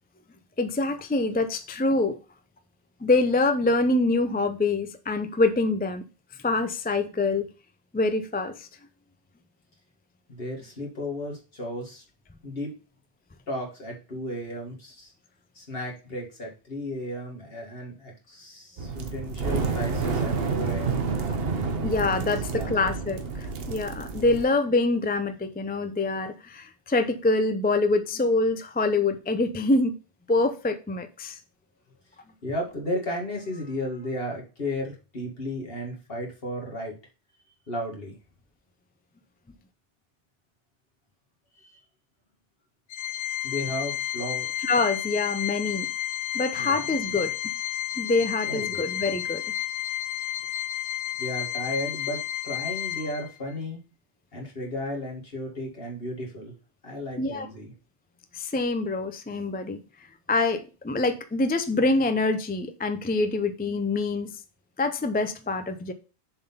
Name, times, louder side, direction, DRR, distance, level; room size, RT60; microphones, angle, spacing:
voice 1, 0.6-2.2 3.0-6.0 6.4-7.5 7.9-8.7 21.8-29.9 30.3-31.4 44.6-45.9 46.3-47.3 48.0-49.4 57.2-57.5 58.3-59.8 60.3-64.4 64.8-65.9, left 3 dB, 15° left, 0.3 m, -25 dB
voice 2, 10.3-12.0 12.4-12.7 13.5-15.1 15.6-21.0 22.5-22.7 32.4-36.9 37.7-38.1 41.6-41.8 43.4-44.5 46.6-46.8 48.5-48.9 51.2-52.2 52.4-53.8 54.3-56.5 56.8-57.7, left 1 dB, 60° left, 2.3 m, -34 dB
sound 1, 18.8-24.4, right 4 dB, 65° right, 1.1 m, -29 dB
Organ, 42.9-53.5, left 12 dB, 90° left, 0.9 m, -31 dB
7.0 x 4.0 x 5.5 m
omnidirectional pair, 1.1 m